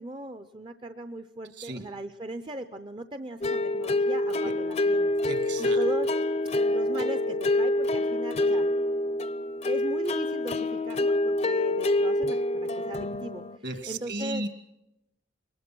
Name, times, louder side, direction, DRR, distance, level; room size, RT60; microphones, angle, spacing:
voice 1, 0.0-5.2 5.6-6.1 6.7-8.7 9.6-13.4 13.9-14.4, right 1 dB, 25° right, 10 dB, 0.6 m, -38 dB
voice 2, 1.5-1.9 4.4-4.5 5.3-5.9 13.6-14.5, right 2 dB, 60° right, 8 dB, 2.6 m, -35 dB
sound 1, 3.4-13.6, left 2 dB, 35° left, 0.6 m, -26 dB
23.0 x 19.5 x 6.1 m, 0.91 s
head